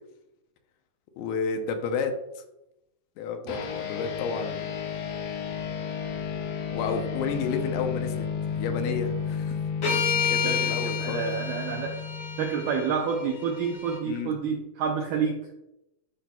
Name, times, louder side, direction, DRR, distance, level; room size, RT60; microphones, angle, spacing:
voice 1, 1.2-2.1 3.2-4.7 6.7-9.6 10.1-11.3 14.0-14.4, left 5 dB, 90° left, 6 dB, 2.6 m, -31 dB
sound 1, 3.5-13.2, left 6 dB, 70° left, 2.5 m, -33 dB
sound 2, 9.8-14.0, left 7 dB, 40° left, 1.6 m, -30 dB
voice 2, 9.9-12.0 12.4-15.4, right 6 dB, 90° right, 2 dB, 1.7 m, -29 dB
10.5 x 4.2 x 2.2 m, 0.90 s
omnidirectional pair, 4.2 m